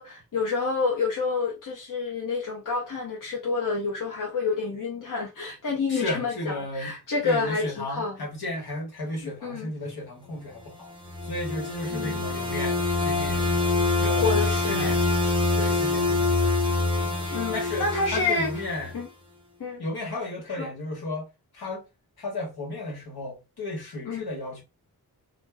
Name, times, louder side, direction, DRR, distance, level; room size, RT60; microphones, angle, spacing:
voice 1, 0.0-8.2 9.4-9.7 11.9-12.2 14.2-15.0 17.3-18.5 18.9-19.1 19.6-19.8 20.5-20.7 24.1-24.2, left 4 dB, 55° left, 0.8 m, -28 dB
voice 2, 5.9-6.9 7.2-10.9 11.2-13.5 14.0-15.1 15.5-16.5 17.0-17.2 17.5-17.8 18.1-18.9 19.8-21.3 21.5-21.8 22.2-24.6, left 2 dB, 75° left, 1.2 m, -34 dB
sound 1, 10.8-19.0, left 2 dB, 15° right, 0.5 m, -25 dB
2.5 x 2.1 x 3.3 m
wide cardioid pair, 165°, 38 cm